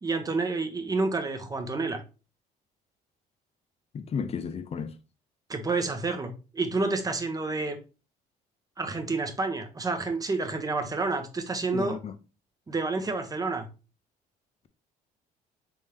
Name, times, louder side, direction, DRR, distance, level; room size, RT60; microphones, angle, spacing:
voice 1, 0.0-2.0 5.5-7.8 8.8-12.0 12.7-13.7, right 3 dB, 20° right, 0.9 m, -29 dB
voice 2, 3.9-4.9 11.7-12.1, left 6 dB, 35° left, 0.6 m, -33 dB
4.2 x 3.6 x 3.3 m
cardioid pair, 110°, 17 cm